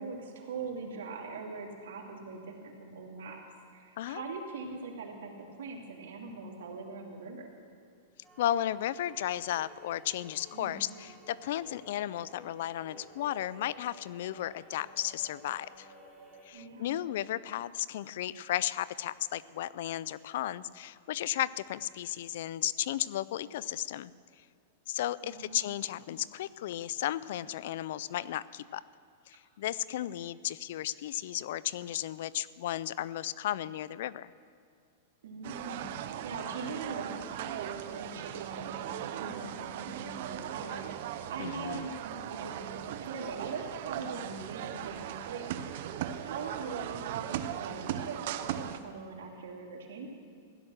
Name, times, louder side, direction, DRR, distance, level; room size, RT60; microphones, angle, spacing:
voice 1, 0.0-3.4 3.7-7.5 10.5-10.8 16.5-17.0 25.2-25.9 35.2-40.8 41.3-45.5 46.2-50.1, right 4 dB, 80° right, 0 dB, 2.9 m, -42 dB
sound 1, 8.2-16.5, equal, ahead, 3.2 m, -55 dB
voice 2, 8.4-15.9 16.4-24.1 24.9-28.8 29.3-34.3 41.4-41.9, left 12 dB, 65° left, 19 dB, 0.4 m, -34 dB
sound 2, 35.4-48.8, right 10 dB, 60° right, 0.8 m, -38 dB
16.0 x 11.0 x 6.5 m, 2.2 s
hypercardioid pair, 140°, 0 cm